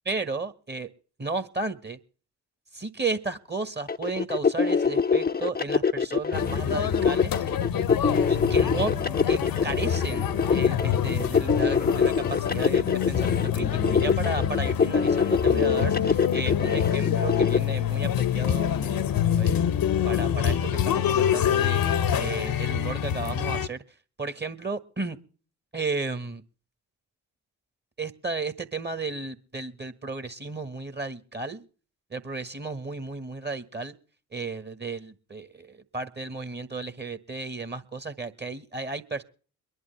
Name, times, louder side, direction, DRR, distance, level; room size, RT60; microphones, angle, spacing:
voice 1, 0.0-0.9 1.2-2.0 2.7-7.5 8.3-8.9 9.3-19.1 19.4-19.6 20.0-21.8 22.1-25.2 25.7-26.4 28.0-31.7 32.1-34.0 34.3-39.2, right 3 dB, 20° right, 11 dB, 1.5 m, -34 dB
sound 1, 3.9-17.6, left 5 dB, 20° left, 0.8 m, -24 dB
sound 2, 6.3-23.7, left 9 dB, 45° left, 1.0 m, -26 dB
sound 3, 8.1-21.9, left 10 dB, 70° left, 1.1 m, -41 dB
23.5 x 11.0 x 3.3 m, 0.39 s
figure-of-eight pair, 40°, 47 cm